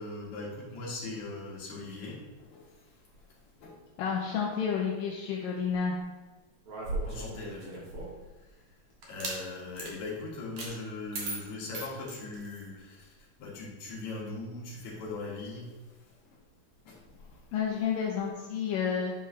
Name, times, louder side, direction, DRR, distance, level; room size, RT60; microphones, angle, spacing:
voice 1, 0.0-3.7 7.1-7.9 8.4-8.8 9.0-16.4 16.8-17.5, left 3 dB, 50° left, -5 dB, 2.9 m, -41 dB
voice 2, 4.0-6.0 17.5-19.1, left 7 dB, 75° left, -2 dB, 2.1 m, -30 dB
sound 1, 6.6-8.2 9.0-9.4 9.7-9.9 10.6-10.7 11.1-12.7, right 2 dB, 65° right, 1.3 m, -37 dB
10.5 x 5.3 x 3.3 m, 1.2 s
omnidirectional pair, 4.7 m